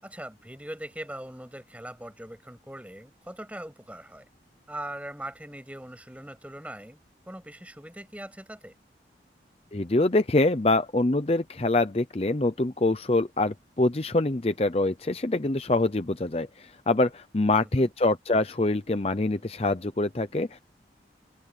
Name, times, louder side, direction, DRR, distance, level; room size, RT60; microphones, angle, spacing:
voice 1, 0.0-4.2 4.7-7.0 7.3-8.7 17.6-17.9, right 1 dB, 10° right, 7.4 m, -41 dB
voice 2, 9.7-20.6, left 2 dB, 35° left, 0.7 m, -25 dB
open air
head